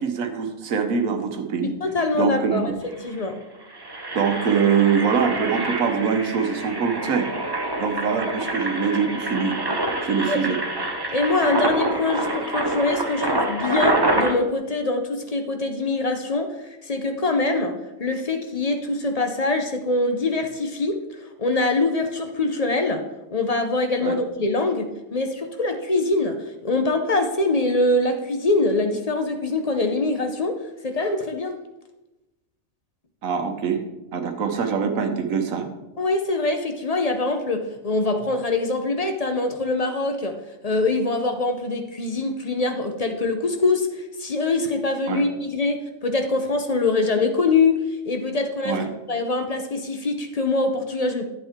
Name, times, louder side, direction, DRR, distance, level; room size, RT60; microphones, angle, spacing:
voice 1, 0.0-1.7 2.2-2.8 4.1-7.3 7.8-9.5 10.0-10.6 24.0-24.2 33.2-33.8 34.1-35.7 45.1-45.2 48.6-48.9, right 6 dB, 80° right, 6 dB, 1.4 m, -23 dB
voice 2, 1.6-2.7 3.0-3.4 10.3-10.4 11.1-16.5 16.8-21.0 21.4-23.0 23.3-30.6 30.8-31.6 36.0-40.4 40.6-51.3, left 2 dB, 35° left, 6 dB, 0.7 m, -24 dB
Engine, 2.6-2.7 2.9-3.1 3.6-14.3, right 2 dB, 20° right, 0.7 m, -26 dB
11.0 x 8.3 x 3.6 m, 1.0 s
omnidirectional pair, 1.4 m